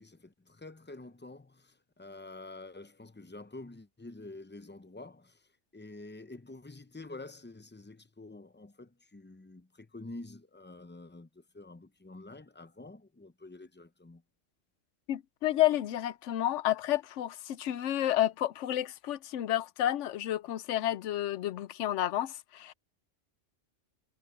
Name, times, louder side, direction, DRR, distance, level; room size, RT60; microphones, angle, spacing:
voice 1, 0.0-14.2, left 2 dB, 20° left, 0.3 m, -48 dB
voice 2, 15.1-22.7, left 13 dB, 75° left, 0.9 m, -30 dB
omnidirectional pair, 1.3 m